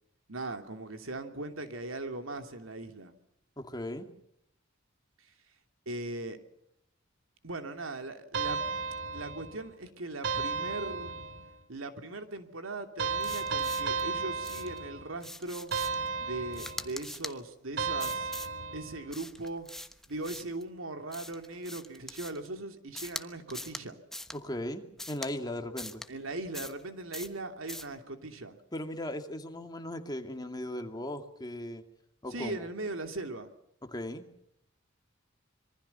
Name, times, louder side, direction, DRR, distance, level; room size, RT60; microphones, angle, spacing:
voice 1, 0.3-3.1 5.9-6.4 7.4-8.6 9.1-11.1 11.7-15.7 16.2-18.3 18.7-19.7 20.1-24.0 26.1-28.6 32.3-33.5, right 2 dB, 90° right, 7 dB, 2.9 m, -39 dB
voice 2, 3.6-4.1 24.3-26.0 28.7-31.8 32.2-32.7 33.8-34.3, left 1 dB, 20° left, 5 dB, 2.4 m, -38 dB
sound 1, 8.3-9.7 10.2-11.6 13.0-15.2 15.7-17.0 17.8-19.1, right 5 dB, 60° right, 2.7 m, -34 dB
sound 2, 13.2-14.0 14.4-14.8 15.2-16.1 16.5-17.4 18.0-18.5 19.1-20.6 21.1-22.5 22.9-23.2 23.5-23.8 24.1-24.4 25.0-25.3 25.8-26.1 26.5-26.8 27.1-27.4 27.7-27.9, left 1 dB, ahead, 1.2 m, -42 dB
26.0 x 23.0 x 5.7 m, 0.76 s
head